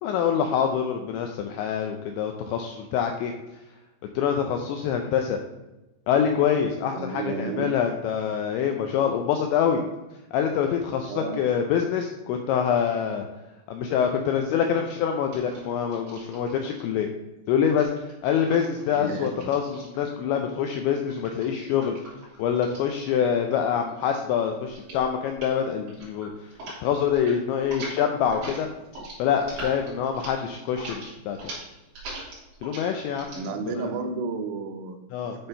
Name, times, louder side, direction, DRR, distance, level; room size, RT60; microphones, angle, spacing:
voice 1, 0.0-3.3 4.2-5.4 6.1-9.8 10.3-13.3 13.7-17.1 17.5-17.9 18.2-22.0 22.4-26.5 26.8-28.7 29.2-31.4 32.6-33.4 33.8-33.9 35.1-35.4, left 8 dB, 85° left, 4 dB, 2.6 m, -25 dB
voice 2, 7.0-7.8 11.1-11.5 18.9-19.3 33.3-35.0 35.4-35.5, right 4 dB, 85° right, 5 dB, 3.5 m, -32 dB
sound 1, 15.3-16.8 17.7-20.2 21.1-23.6 23.9-24.3 24.7-25.0 25.3-25.6 25.9-26.8 27.0-27.4 27.6-33.5, right 2 dB, 45° right, 4.5 m, -41 dB
11.0 x 4.5 x 5.4 m, 1.0 s
omnidirectional pair, 5.9 m